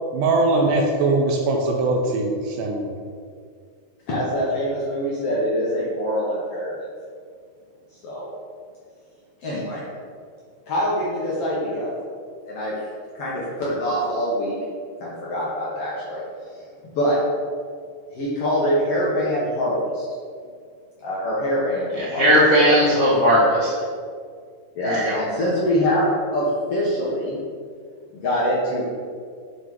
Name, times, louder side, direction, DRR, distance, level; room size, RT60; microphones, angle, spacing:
voice 1, 0.1-2.9, right 2 dB, 75° right, 1 dB, 2.0 m, -21 dB
voice 2, 4.1-6.9 8.0-8.3 9.4-9.8 10.7-11.9 12.4-12.7 13.1-14.5 15.0-16.2 16.5-17.2 18.1-20.1 21.0-22.3 22.6-22.9 24.7-26.4 26.7-27.4 28.1-28.8, equal, 65° left, -7 dB, 1.5 m, -24 dB
voice 3, 21.9-23.8 24.8-25.2, equal, 90° left, -10 dB, 0.6 m, -18 dB
7.8 x 4.0 x 4.7 m, 2.1 s
omnidirectional pair, 4.1 m